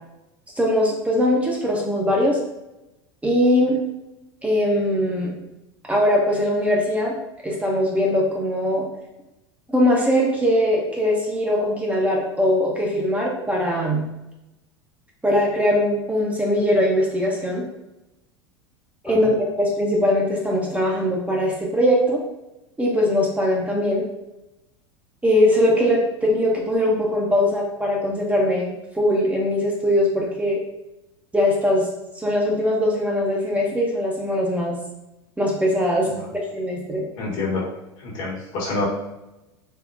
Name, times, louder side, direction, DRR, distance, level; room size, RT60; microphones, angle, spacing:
voice 1, 0.6-2.4 3.2-3.8 4.4-5.3 5.9-7.2 7.4-8.8 9.7-14.0 15.2-17.6 19.0-19.3 19.6-22.2 22.8-24.0 25.2-30.6 31.3-31.9 32.2-34.8 35.4-36.2 36.5-37.0, left 1 dB, 10° right, -2 dB, 0.6 m, -21 dB
voice 2, 37.2-37.7 38.0-38.9, left 3 dB, 55° left, -3 dB, 1.1 m, -27 dB
3.6 x 2.2 x 2.5 m, 0.95 s
figure-of-eight pair, 80°, 14 cm